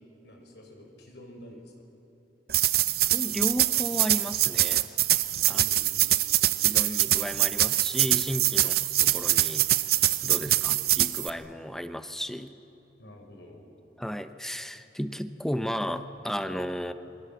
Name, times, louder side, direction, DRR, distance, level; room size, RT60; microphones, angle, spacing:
voice 1, 0.2-1.8 5.4-6.2 8.5-8.7 10.4-10.8 13.0-13.6, equal, 80° left, 2 dB, 5.1 m, -49 dB
sound 1, 2.5-11.3, right 14 dB, 60° right, 0.7 m, -24 dB
voice 2, 3.1-4.9 5.5-5.6 6.6-9.7 10.2-12.6 14.0-16.9, equal, 5° left, 10 dB, 0.8 m, -34 dB
28.0 x 23.0 x 7.2 m, 3.0 s
head